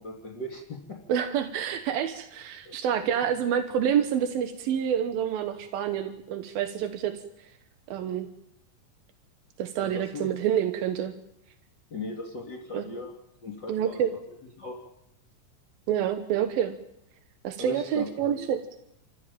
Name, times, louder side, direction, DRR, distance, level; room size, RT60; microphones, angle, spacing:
voice 1, 0.0-1.0 2.7-2.8 9.8-10.3 11.9-13.1 13.4-14.0 14.6-14.8 17.6-18.4, left 2 dB, 30° left, 1 dB, 4.1 m, -38 dB
voice 2, 1.1-7.1 7.9-8.3 9.6-11.1 12.7-12.8 13.7-14.1 15.9-16.8 17.4-18.6, right 9 dB, 85° right, 8 dB, 3.1 m, -27 dB
29.0 x 15.0 x 9.1 m, 0.79 s
omnidirectional pair, 4.0 m